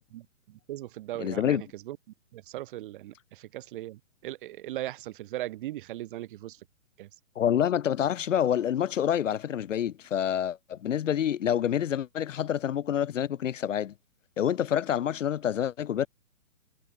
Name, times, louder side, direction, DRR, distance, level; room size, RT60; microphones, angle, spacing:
voice 1, 0.1-2.0 2.3-6.6 7.0-7.1, right 15 dB, 35° right, 1.7 m, -39 dB
voice 2, 1.2-1.6 7.4-13.9 14.4-16.1, left 9 dB, 60° left, 0.7 m, -27 dB
figure-of-eight pair, 135°, 42 cm